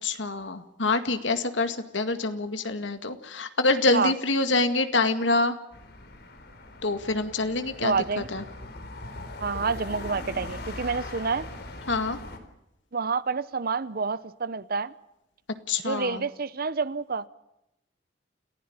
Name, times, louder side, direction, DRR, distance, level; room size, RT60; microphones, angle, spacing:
voice 1, 0.0-5.6 6.8-7.9 8.3-8.4 11.9-12.2 15.7-16.3, left 3 dB, 90° left, 2.1 m, -26 dB
sound 1, 5.7-12.4, left 2 dB, 60° left, 4.1 m, -40 dB
voice 2, 7.8-8.3 9.4-11.5 12.9-14.9 15.8-17.2, right 4 dB, 55° right, 0.8 m, -28 dB
29.5 x 15.5 x 8.8 m
head